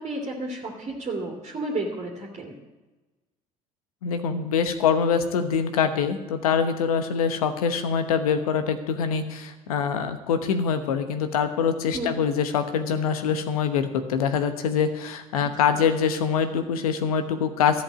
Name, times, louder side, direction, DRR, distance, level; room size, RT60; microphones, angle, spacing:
voice 1, 0.0-2.6 11.9-12.1 15.3-15.8, right 2 dB, 40° right, -2 dB, 2.4 m, -32 dB
voice 2, 4.0-17.8, left 6 dB, 80° left, 9 dB, 1.0 m, -24 dB
14.0 x 5.3 x 8.5 m, 1.1 s
hypercardioid pair, 65°, 18 cm